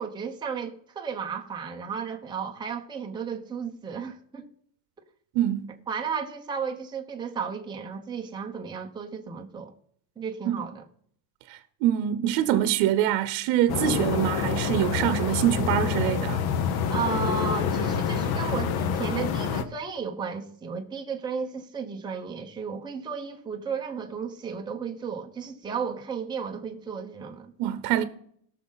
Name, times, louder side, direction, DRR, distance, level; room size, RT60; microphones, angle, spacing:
voice 1, 0.0-4.5 5.9-9.7 10.2-10.8 16.9-27.5, right 6 dB, 10° right, 0.8 m, -34 dB
voice 2, 5.3-5.7 10.5-10.6 11.5-16.4 27.6-28.0, right 11 dB, 65° right, 0.9 m, -25 dB
sound 1, 13.7-19.6, left 6 dB, 50° left, 1.0 m, -27 dB
17.0 x 6.4 x 4.0 m
cardioid pair, 145°, 49 cm